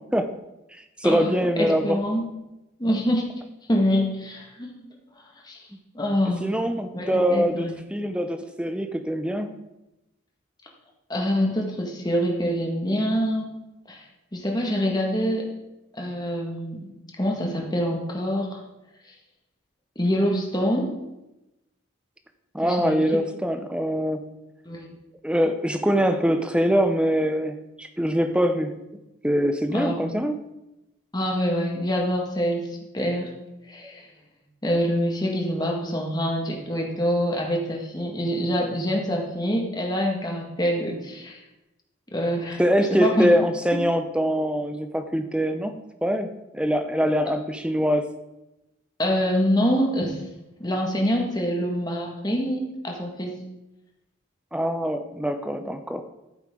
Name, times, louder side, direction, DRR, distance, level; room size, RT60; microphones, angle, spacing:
voice 1, 1.0-2.0 5.7-5.8 6.4-9.5 22.5-24.3 25.2-28.7 29.2-30.4 42.6-48.1 54.5-56.0, equal, 5° right, 7 dB, 0.7 m, -23 dB
voice 2, 1.6-2.3 2.8-3.3 3.7-4.9 5.4-5.6 5.9-6.5 6.9-7.7 11.1-13.5 13.9-14.0 14.3-15.4 15.9-16.9 17.2-18.6 19.9-20.9 22.6-23.0 24.6-24.9 29.7-30.0 31.1-32.7 32.9-33.3 33.7-34.1 34.6-41.4 42.1-42.6 42.9-43.3 43.7-43.8 49.0-50.2 50.6-53.4, equal, 20° left, 0 dB, 1.7 m, -25 dB
14.0 x 7.7 x 3.8 m, 0.96 s
head